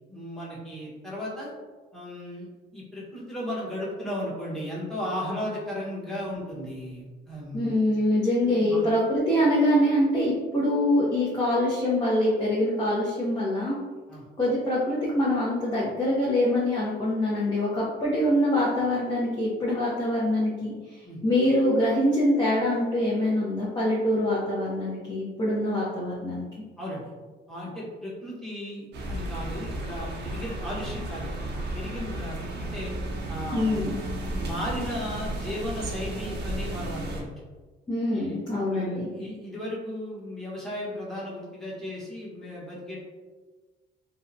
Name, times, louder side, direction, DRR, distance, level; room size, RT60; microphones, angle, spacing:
voice 1, 0.1-1.5 1.9-7.8 8.5-8.9 14.1-14.3 21.0-21.2 26.8-27.0 27.5-32.9 33.3-33.8 34.3-37.4 38.1-43.0, left 1 dB, ahead, -6 dB, 1.0 m, -35 dB
voice 2, 7.5-13.7 14.4-26.4 33.5-34.0 37.9-39.1, left 1 dB, 20° left, -7 dB, 0.7 m, -24 dB
sound 1, 28.9-37.2, right 1 dB, 55° right, 0.6 m, -33 dB
2.7 x 2.2 x 2.5 m, 1.3 s
cardioid pair, 90°, 20 cm